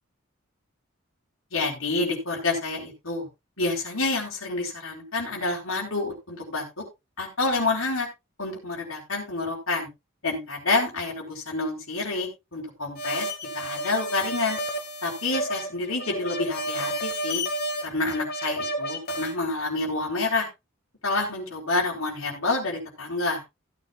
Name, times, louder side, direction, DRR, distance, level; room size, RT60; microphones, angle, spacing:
voice 1, 1.5-3.3 3.6-6.6 7.2-8.1 8.4-9.9 10.2-13.3 13.5-14.6 15.0-17.4 17.8-20.5 21.0-23.4, left 3 dB, 75° left, -1 dB, 4.1 m, -28 dB
sound 1, 13.0-19.3, equal, 50° left, 2.0 m, -31 dB
16.0 x 9.4 x 2.4 m, 0.23 s
head